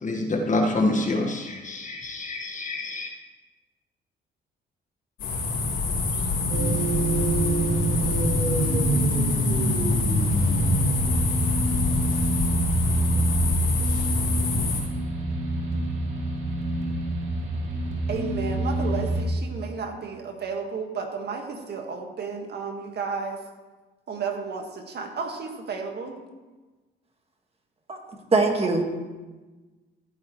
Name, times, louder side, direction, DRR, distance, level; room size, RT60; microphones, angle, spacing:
voice 1, 0.0-3.1, left 2 dB, 40° left, 1 dB, 1.6 m, -26 dB
sound 1, 5.2-14.8, left 2 dB, 75° left, 3.9 m, -25 dB
sound 2, 6.5-19.2, right 2 dB, 80° right, 2.2 m, -26 dB
voice 2, 18.1-23.4 24.1-26.1, right 5 dB, 55° right, 3 dB, 1.8 m, -32 dB
voice 3, 28.3-28.8, right 3 dB, 30° right, 2 dB, 1.8 m, -21 dB
15.0 x 9.2 x 3.2 m, 1.2 s
cardioid pair, 90°, 20 cm